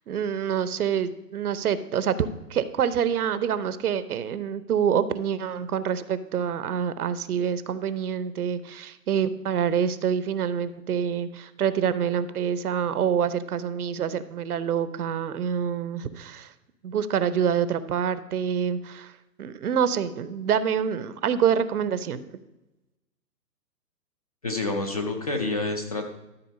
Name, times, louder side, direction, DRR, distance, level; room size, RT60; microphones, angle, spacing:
voice 1, 0.1-16.5 16.8-19.1 19.4-22.4, right 8 dB, 65° right, 14 dB, 0.7 m, -26 dB
voice 2, 24.4-26.0, left 2 dB, 25° left, 5 dB, 0.5 m, -28 dB
13.0 x 4.3 x 5.3 m, 0.98 s
hypercardioid pair, 150°, 49 cm